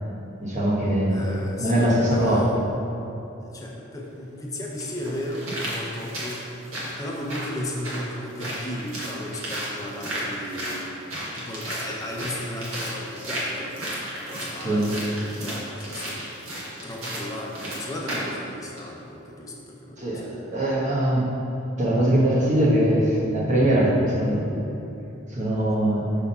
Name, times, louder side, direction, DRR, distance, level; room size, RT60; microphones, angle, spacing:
voice 1, 0.4-1.2 1.6-2.4 14.6-14.9 20.0-21.3 21.8-24.5 24.8-24.9 25.3-26.0, right 1 dB, 35° right, -5 dB, 1.2 m, -22 dB
voice 2, 1.1-2.6 3.4-10.9 11.3-16.2 16.8-20.4, left 1 dB, 15° left, -2 dB, 0.6 m, -35 dB
sound 1, 3.9-4.0 4.8-18.4 18.8-18.9, right 1 dB, 85° right, 1.5 m, -34 dB
5.8 x 3.6 x 5.4 m, 2.9 s
head